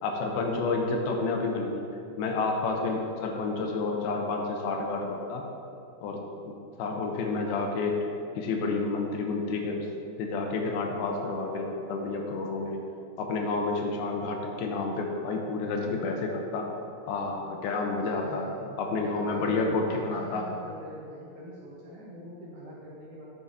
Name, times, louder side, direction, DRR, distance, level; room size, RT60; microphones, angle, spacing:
voice 1, 0.0-1.8 2.2-5.4 6.0-6.2 6.5-6.6 6.8-8.1 8.4-9.9 10.2-12.8 13.2-16.7 17.1-18.5 18.8-20.4, left 3 dB, 80° left, 2 dB, 2.7 m, -30 dB
voice 2, 18.0-18.7 19.0-23.3, right 1 dB, 65° right, -5 dB, 2.2 m, -43 dB
10.5 x 7.1 x 2.8 m, 2.5 s
omnidirectional pair, 4.4 m